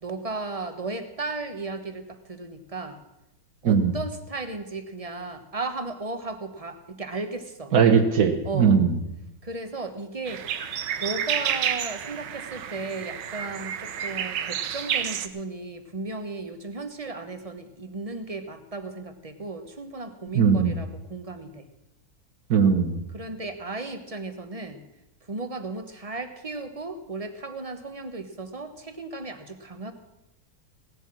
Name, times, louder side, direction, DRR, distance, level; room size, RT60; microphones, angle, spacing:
voice 1, 0.0-3.0 3.6-7.7 8.4-8.8 9.4-10.4 11.0-21.7 23.1-24.8 25.3-29.9, right 3 dB, 25° right, 8 dB, 0.8 m, -35 dB
voice 2, 3.6-4.0 7.7-9.0 20.3-20.8 22.5-23.0, right 6 dB, 60° right, 8 dB, 1.7 m, -19 dB
sound 1, 10.3-15.3, right 9 dB, 80° right, 1.5 m, -30 dB
17.0 x 8.1 x 7.4 m, 0.90 s
omnidirectional pair, 1.9 m